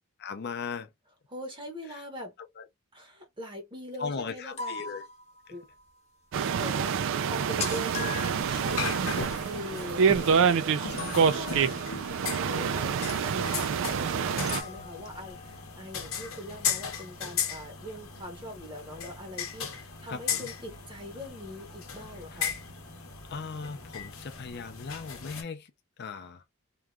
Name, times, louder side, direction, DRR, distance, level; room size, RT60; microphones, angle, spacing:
voice 1, 0.2-0.9 2.6-2.7 4.0-5.0 5.5-5.6 10.9-11.8 20.1-20.5 23.3-25.7 26.0-26.4, left 5 dB, 50° left, 0.5 m, -38 dB
voice 2, 1.3-2.3 2.9-4.8 5.5-5.7 6.3-22.6, left 1 dB, 20° right, 0.8 m, -42 dB
sound 1, 4.4-5.9 6.1-6.2 6.5-6.6 6.8-6.9 7.1-10.4 11.0-12.7 13.1-13.8 14.5-16.2, left 4 dB, 30° left, 0.8 m, -42 dB
sound 2, 6.3-14.6, right 6 dB, 60° right, 0.3 m, -27 dB
sound 3, 8.2-25.4, left 7 dB, 65° left, 0.9 m, -37 dB
3.0 x 2.3 x 2.2 m
head